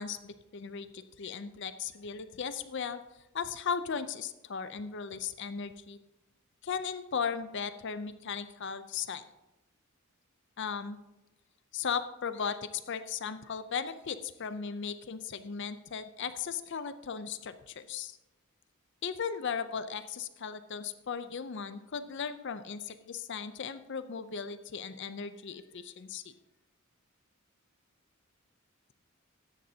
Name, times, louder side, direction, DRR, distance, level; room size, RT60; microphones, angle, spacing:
voice 1, 0.0-3.0 3.3-6.0 6.6-9.2 10.6-11.0 11.7-18.2 19.0-26.3, left 6 dB, 55° left, 12 dB, 0.5 m, -37 dB
15.0 x 11.0 x 2.8 m, 0.99 s
head